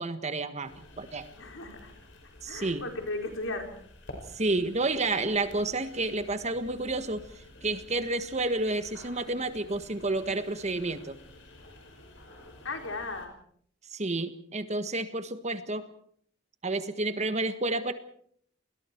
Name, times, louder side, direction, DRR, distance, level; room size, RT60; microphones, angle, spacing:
voice 1, 0.0-1.3 2.4-2.9 4.3-11.2 13.9-15.9 16.6-17.9, right 2 dB, 35° right, 10 dB, 1.6 m, -30 dB
sound 1, 0.6-13.3, left 1 dB, 65° left, 5.6 m, -51 dB
voice 2, 1.4-1.9 2.5-3.7 12.6-13.3, left 2 dB, 90° left, 3 dB, 4.8 m, -36 dB
29.5 x 20.5 x 4.6 m, 0.62 s
head